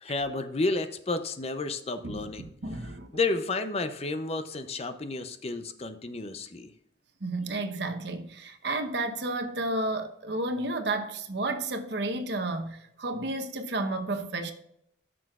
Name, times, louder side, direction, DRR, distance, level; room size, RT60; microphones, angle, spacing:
voice 1, 0.0-2.5 3.1-6.7, left 3 dB, 35° left, 0.5 m, -31 dB
voice 2, 2.6-3.1 7.2-14.5, right 2 dB, 65° right, 0.9 m, -31 dB
13.5 x 6.2 x 2.4 m
head